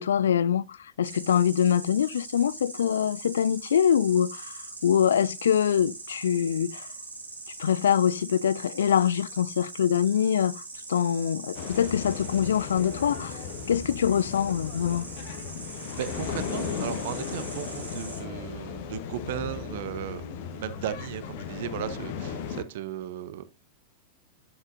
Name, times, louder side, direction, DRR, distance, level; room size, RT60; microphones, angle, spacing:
voice 1, 0.0-6.9 7.6-10.6 10.9-13.4 13.7-15.0, left 8 dB, 65° left, 0.3 m, -24 dB
Insect, 1.0-18.2, right 3 dB, 80° right, 2.1 m, -42 dB
sound 1, 11.5-22.6, left 6 dB, 50° left, 1.1 m, -36 dB
voice 2, 15.9-23.4, right 11 dB, 55° right, 0.6 m, -36 dB
8.8 x 7.7 x 2.5 m
figure-of-eight pair, 90°, 0 cm